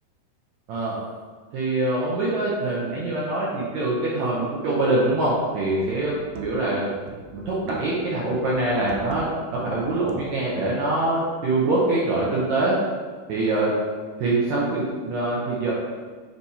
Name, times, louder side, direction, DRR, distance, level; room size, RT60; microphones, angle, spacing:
voice 1, 1.5-6.9 7.3-12.8 13.3-13.7 14.2-15.7, right 2 dB, 70° right, -6 dB, 1.8 m, -24 dB
sound 1, 5.1-5.4 5.8-6.8 7.1-8.1 8.3-10.6, right 5 dB, 85° right, 2.6 m, -40 dB
8.4 x 3.0 x 4.2 m, 1.5 s
omnidirectional pair, 4.3 m